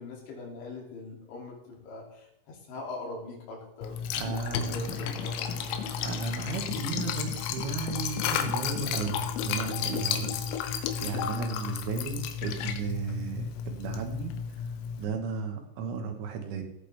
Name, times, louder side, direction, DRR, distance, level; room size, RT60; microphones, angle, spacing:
voice 1, 0.0-4.0 4.5-5.9 11.3-11.5, left 3 dB, 65° left, -3 dB, 4.9 m, -42 dB
Liquid, 3.8-15.1, left 8 dB, 85° left, 3.5 m, -32 dB
voice 2, 4.2-5.2 6.0-14.6 15.0-16.6, right 5 dB, 75° right, 4 dB, 3.7 m, -35 dB
sound 1, 4.7-9.9, right 1 dB, 50° right, 6.4 m, -51 dB
17.0 x 8.5 x 3.5 m, 0.81 s
omnidirectional pair, 5.8 m